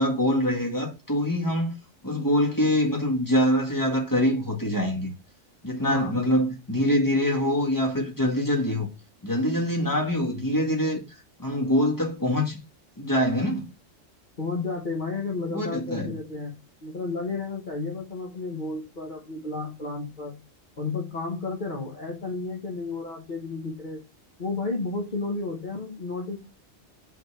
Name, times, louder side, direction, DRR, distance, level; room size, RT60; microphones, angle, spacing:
voice 1, 0.0-1.8 2.0-5.1 5.6-8.9 9.2-11.0 11.4-12.6 13.0-13.7 15.5-16.2, equal, 15° left, 1.8 m, -24 dB
voice 2, 5.9-6.2 14.4-16.5 16.8-20.4 20.8-24.0 24.4-26.4, left 3 dB, 40° left, 1.4 m, -32 dB
5.5 x 4.1 x 4.8 m
omnidirectional pair, 1.3 m